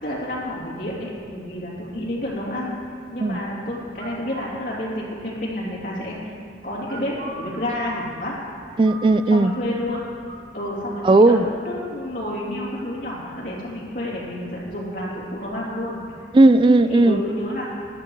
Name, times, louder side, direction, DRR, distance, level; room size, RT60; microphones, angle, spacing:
voice 1, 0.0-2.8 3.1-6.3 6.6-8.4 9.3-10.0 10.5-16.0 16.9-17.7, left 1 dB, 45° left, -6 dB, 2.9 m, -30 dB
sound 1, 3.9-4.5 6.8-9.5 9.9-10.0 10.3-11.3, right 2 dB, 75° right, 1.7 m, -39 dB
voice 2, 8.8-9.5 11.0-11.5 16.3-17.2, right 2 dB, 25° right, 11 dB, 0.3 m, -15 dB
15.0 x 11.5 x 3.2 m, 2.3 s
head